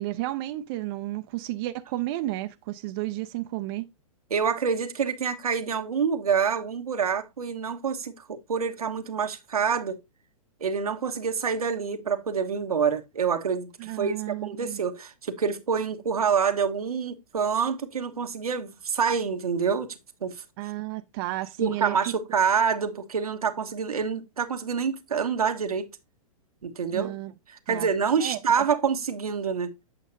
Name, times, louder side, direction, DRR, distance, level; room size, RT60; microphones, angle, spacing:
voice 1, 0.0-3.8 13.8-14.8 20.6-22.0 26.9-27.3 27.7-27.9 28.2-28.6, right 16 dB, 40° right, 0.6 m, -32 dB
voice 2, 4.3-10.0 10.6-20.4 21.6-25.9 26.6-27.1 27.5-29.7, right 6 dB, 85° right, 1.1 m, -27 dB
8.5 x 6.3 x 2.6 m
hypercardioid pair, 125°, 19 cm